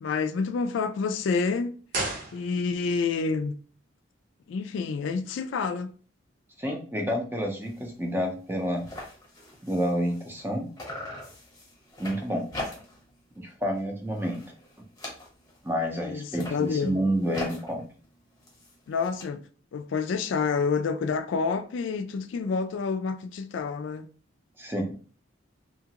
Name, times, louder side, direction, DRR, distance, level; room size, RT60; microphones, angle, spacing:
voice 1, 0.0-1.7 2.3-3.5 4.5-5.9 16.0-17.0 18.9-19.4 19.7-24.1, left 5 dB, 75° left, 0.3 m, -28 dB
sound 1, 1.9-3.0 3.2-3.3, right 2 dB, 45° right, 0.7 m, -33 dB
voice 2, 6.6-8.8 9.6-10.7 12.0-12.5 13.4-14.4 15.6-17.8 24.6-24.9, equal, 10° right, 0.5 m, -29 dB
sound 2, 7.6-7.9 8.2-8.3 8.5-10.5 10.8-13.1 13.5-13.8 14.1-15.7 16.2-19.2, left 1 dB, 15° left, 0.9 m, -41 dB
2.8 x 2.4 x 2.8 m
head